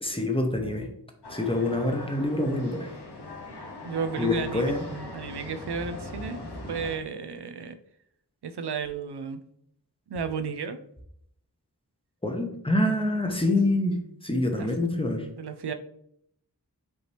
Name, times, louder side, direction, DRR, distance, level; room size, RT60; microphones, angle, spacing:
voice 1, 0.0-0.9 1.3-2.9 4.2-4.9 12.2-15.3, left 1 dB, 15° left, 4 dB, 0.8 m, -26 dB
sound 1, 1.2-7.0, left 1 dB, 85° left, 0.9 m, -40 dB
voice 2, 3.8-4.7 5.1-7.8 8.4-9.4 10.1-10.8 14.6-14.7 15.4-15.7, right 5 dB, 85° right, 9 dB, 0.5 m, -33 dB
5.3 x 2.9 x 3.3 m, 0.70 s
wide cardioid pair, 40°, 39 cm